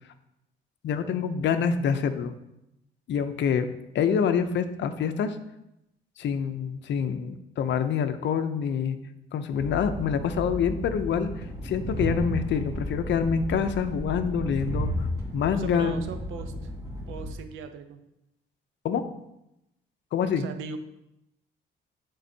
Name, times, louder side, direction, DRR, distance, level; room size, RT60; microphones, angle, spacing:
voice 1, 0.8-2.3 3.1-3.7 3.9-5.4 6.2-9.0 9.3-15.1 15.3-15.9 18.8-19.0 20.1-20.5, left 7 dB, 65° left, 9 dB, 0.6 m, -26 dB
Train, 9.5-17.3, equal, 20° right, 1.8 m, -33 dB
voice 2, 15.5-16.5 17.1-18.0 20.4-20.8, right 6 dB, 85° right, 8 dB, 0.7 m, -38 dB
9.4 x 3.7 x 2.7 m, 0.87 s
cardioid pair, 90°, 20 cm